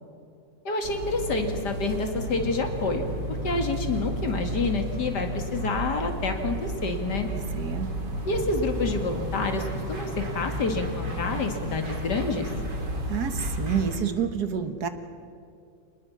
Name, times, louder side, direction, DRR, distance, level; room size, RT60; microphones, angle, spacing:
voice 1, 0.6-7.3 8.2-12.5, left 3 dB, 75° left, 5 dB, 2.8 m, -28 dB
sound 1, 0.8-14.0, equal, 85° right, 3.9 m, -32 dB
voice 2, 7.2-7.9 13.1-14.9, right 8 dB, 65° right, 9 dB, 1.9 m, -29 dB
25.5 x 20.0 x 7.3 m, 2.4 s
omnidirectional pair, 1.8 m